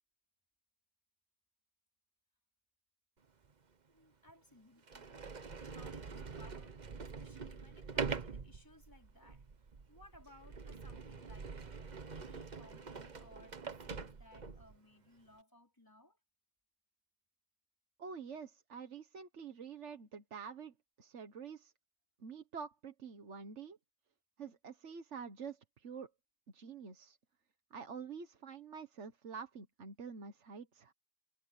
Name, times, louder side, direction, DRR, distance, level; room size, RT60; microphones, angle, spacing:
Sliding door, 3.4-3.5 4.3-4.4 4.8-14.8, right 5 dB, 40° right, 1.1 m, -44 dB
voice 1, 3.9-5.1 5.6-11.8 12.1-16.2, left 1 dB, 15° left, 5.0 m, -62 dB
voice 2, 18.0-21.7 22.2-23.8 24.4-26.1 26.5-27.2 27.7-30.9, right 6 dB, 80° right, 1.7 m, -47 dB
omnidirectional pair, 1.2 m